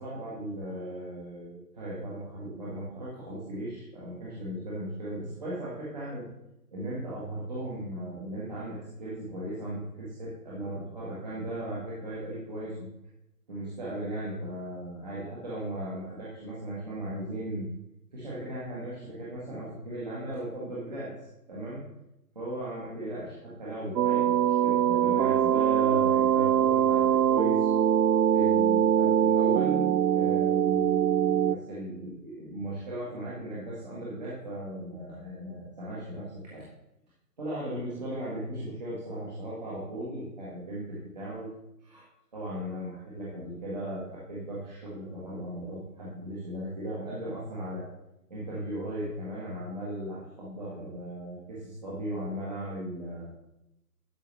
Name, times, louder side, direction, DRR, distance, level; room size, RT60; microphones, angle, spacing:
voice 1, 0.0-6.3 6.7-12.9 13.5-17.7 18.1-21.1 21.5-21.8 22.3-27.7 28.3-29.9 30.1-36.6 37.4-41.5 41.8-42.0 42.3-47.9 48.3-53.3, right 1 dB, 25° right, -8 dB, 1.7 m, -37 dB
sound 1, 24.0-31.6, right 9 dB, 85° right, 0.6 m, -23 dB
12.0 x 5.8 x 3.4 m, 0.87 s
hypercardioid pair, 175°, 48 cm